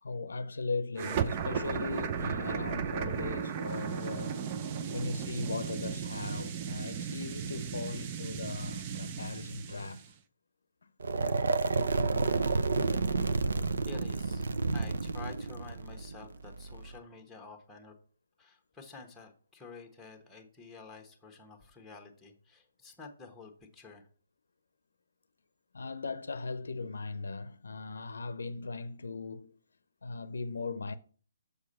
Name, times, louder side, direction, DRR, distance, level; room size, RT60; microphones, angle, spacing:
voice 1, 0.0-4.4 4.9-10.0 25.7-29.6 30.0-30.9, left 3 dB, 85° left, 0.6 m, -38 dB
sound 1, 1.0-10.1, right 7 dB, 30° right, 0.6 m, -35 dB
sound 2, 11.0-17.0, right 4 dB, 75° right, 0.6 m, -30 dB
voice 2, 13.8-17.9 18.4-24.1, left 4 dB, 5° left, 1.1 m, -50 dB
6.6 x 4.7 x 5.3 m
hypercardioid pair, 150°, 0 cm